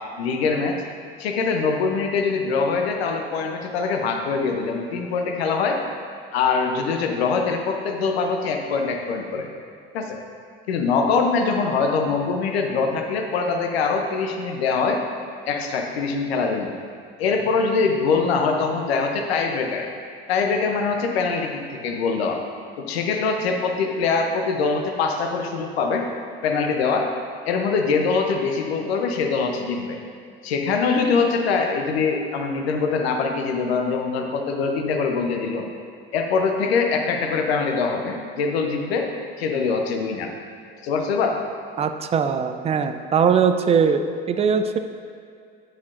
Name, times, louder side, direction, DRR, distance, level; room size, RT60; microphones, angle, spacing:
voice 1, 0.2-0.8 1.2-5.8 6.3-9.5 9.9-10.2 10.7-15.0 15.5-16.7 17.2-19.9 20.3-22.4 22.8-26.1 26.4-27.1 27.5-30.0 30.4-35.7 36.1-39.1 39.4-40.3 40.8-41.4, left 4 dB, 80° left, 3 dB, 0.7 m, -23 dB
voice 2, 41.8-44.8, right 6 dB, 20° right, 8 dB, 0.4 m, -21 dB
9.5 x 4.5 x 2.5 m, 2.2 s
hypercardioid pair, 75°, 31 cm